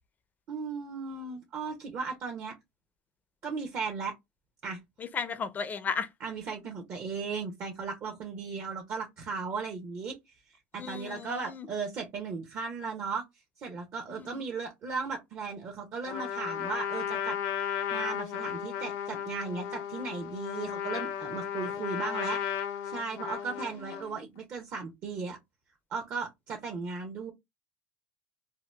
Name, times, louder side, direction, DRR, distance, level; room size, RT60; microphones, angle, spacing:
voice 1, 0.5-2.5 3.4-4.1 4.6-4.8 6.2-10.3 10.7-13.2 13.6-17.4 17.9-22.4 22.8-25.4 25.9-27.3, right 5 dB, 45° right, 0.8 m, -36 dB
voice 2, 5.0-6.1 10.8-11.7 14.1-14.4 23.5-24.2, left 6 dB, 30° left, 0.5 m, -36 dB
Trumpet, 16.1-24.2, left 9 dB, 70° left, 0.7 m, -35 dB
2.8 x 2.2 x 3.2 m
supercardioid pair, 105°, 6 cm